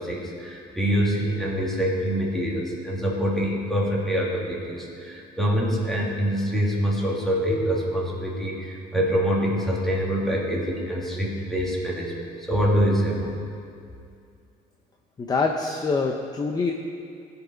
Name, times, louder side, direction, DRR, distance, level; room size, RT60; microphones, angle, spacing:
voice 1, 0.0-13.3, equal, ahead, -4 dB, 2.4 m, -25 dB
voice 2, 15.2-16.7, left 4 dB, 20° left, 3 dB, 0.7 m, -25 dB
16.5 x 5.6 x 5.2 m, 2.4 s
cardioid pair, 110°, 17 cm